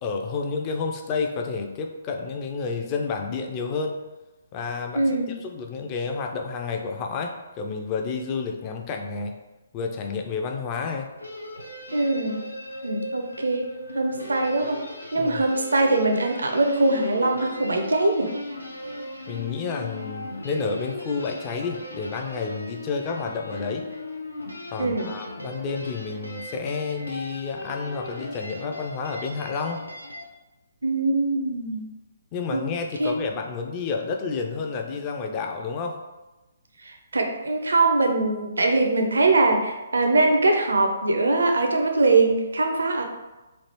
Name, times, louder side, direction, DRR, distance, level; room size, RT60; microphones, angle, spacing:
voice 1, 0.0-4.0 4.5-5.0 5.4-9.3 9.7-11.1 15.2-15.4 19.3-23.9 24.7-29.9 32.3-36.0, left 4 dB, 25° left, 3 dB, 0.3 m, -30 dB
voice 2, 4.9-5.3 11.9-12.4 12.8-14.8 15.1-18.3 24.8-25.1 30.8-31.8 32.5-32.6 33.0-33.2 36.8-43.0, right 2 dB, 65° right, 3 dB, 0.5 m, -22 dB
sound 1, 11.2-30.3, left 1 dB, 85° left, 0.5 m, -38 dB
3.2 x 2.4 x 2.9 m, 1.1 s
figure-of-eight pair, 130°, 0 cm